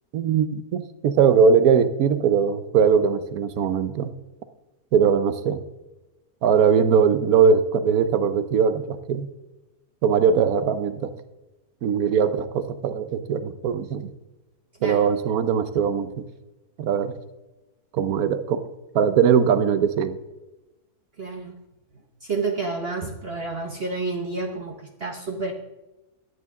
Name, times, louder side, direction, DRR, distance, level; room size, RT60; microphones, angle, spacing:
voice 1, 0.1-4.1 4.9-5.6 6.4-9.3 10.0-11.1 11.8-14.1 14.8-16.1 16.8-17.1 17.9-18.6 18.9-20.2, right 6 dB, 70° right, 12 dB, 1.2 m, -20 dB
voice 2, 14.8-15.2 21.2-21.6 22.2-25.5, right 3 dB, 45° right, 3 dB, 1.0 m, -30 dB
14.0 x 9.5 x 3.6 m, 1.0 s
omnidirectional pair, 1.7 m